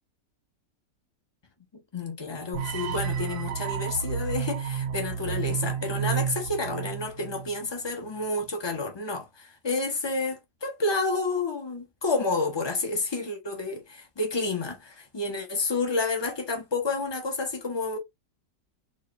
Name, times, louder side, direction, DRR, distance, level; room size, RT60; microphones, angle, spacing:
voice 1, 1.9-18.0, left 3 dB, 40° left, 0.3 m, -30 dB
sound 1, 2.5-7.6, right 8 dB, 75° right, 1.2 m, -31 dB
3.1 x 2.5 x 3.9 m
omnidirectional pair, 1.9 m